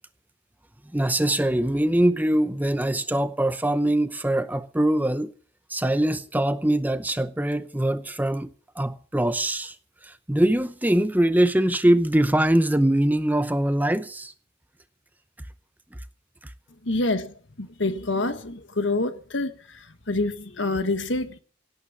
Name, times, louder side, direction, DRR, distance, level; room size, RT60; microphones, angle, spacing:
voice 1, 0.9-5.3 5.7-9.8 10.0-14.3 16.4-16.5, right 1 dB, 10° right, 0.7 m, -23 dB
voice 2, 16.8-21.4, left 2 dB, 65° left, 1.6 m, -27 dB
17.5 x 9.5 x 7.3 m
head